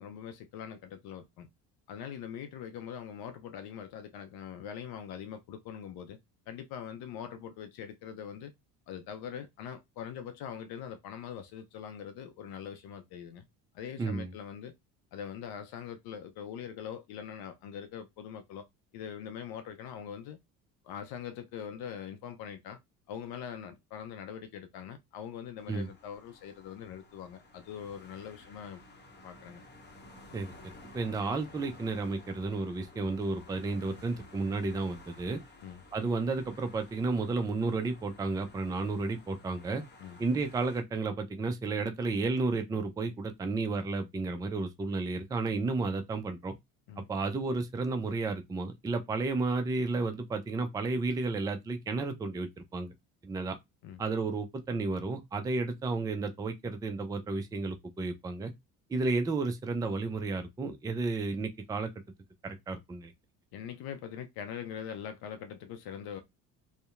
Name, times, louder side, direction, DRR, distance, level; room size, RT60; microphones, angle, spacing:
voice 1, 0.0-1.5 1.9-6.2 6.5-8.5 8.9-13.5 13.7-14.7 15.1-18.6 18.9-20.4 20.8-22.8 23.1-28.8 29.2-29.6 35.6-35.8 40.0-40.2 46.9-47.1 53.8-54.0 63.5-66.2, left 8 dB, 60° left, 0.6 m, -42 dB
voice 2, 14.0-14.3 25.7-25.9 30.3-30.5 30.9-35.4 35.9-39.8 40.2-46.5 47.0-52.9 53.2-53.6 54.0-58.5 58.9-61.9 62.4-63.1, right 3 dB, 10° right, 0.3 m, -32 dB
sound 1, 25.6-40.8, left 2 dB, 25° left, 0.8 m, -54 dB
2.7 x 2.1 x 2.4 m
hypercardioid pair, 65°, 43 cm